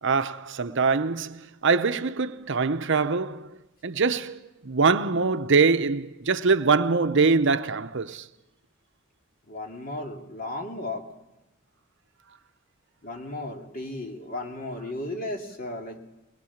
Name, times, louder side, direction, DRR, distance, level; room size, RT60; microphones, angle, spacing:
voice 1, 0.0-3.6 3.8-8.3, right 4 dB, 60° right, 0.8 m, -23 dB
voice 2, 9.5-11.1 13.0-16.0, left 2 dB, 45° left, 2.7 m, -35 dB
22.0 x 21.5 x 7.3 m
head